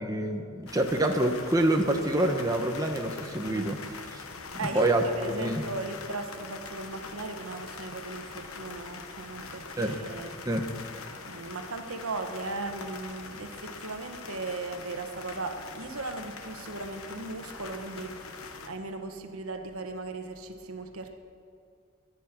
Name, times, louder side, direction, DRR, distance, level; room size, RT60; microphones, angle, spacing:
voice 1, 0.0-3.8 4.1-4.2 4.6-5.0 5.4-5.6 9.8-10.0 10.4-10.7, right 1 dB, 15° right, 3 dB, 1.0 m, -26 dB
sound 1, 0.7-18.7, left 4 dB, 85° left, 1.2 m, -43 dB
voice 2, 4.6-10.4 11.2-21.2, right 3 dB, 85° right, 6 dB, 1.2 m, -37 dB
21.5 x 10.5 x 6.0 m, 2.3 s
head